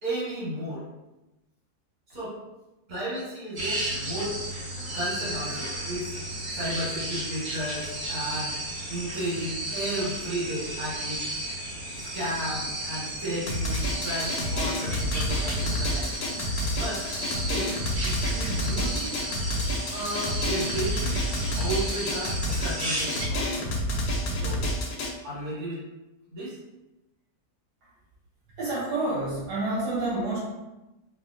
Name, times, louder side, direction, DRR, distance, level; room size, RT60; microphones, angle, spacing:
voice 1, 0.0-0.9 2.1-2.4 2.9-4.4 4.9-6.2 6.5-8.6 8.9-11.2 11.9-16.1 16.7-17.7 18.0-19.1 19.9-21.2 21.6-23.7 24.4-24.7 25.2-25.8 26.3-26.6, right 1 dB, 65° right, -7 dB, 2.0 m, -33 dB
sound 1, 3.6-23.2, right 1 dB, 40° right, 0.7 m, -34 dB
Drum, 13.5-25.1, equal, 80° left, 1.1 m, -29 dB
voice 2, 28.6-30.4, right 2 dB, 80° right, -8 dB, 1.4 m, -28 dB
3.5 x 2.4 x 2.5 m, 1.0 s
omnidirectional pair, 1.7 m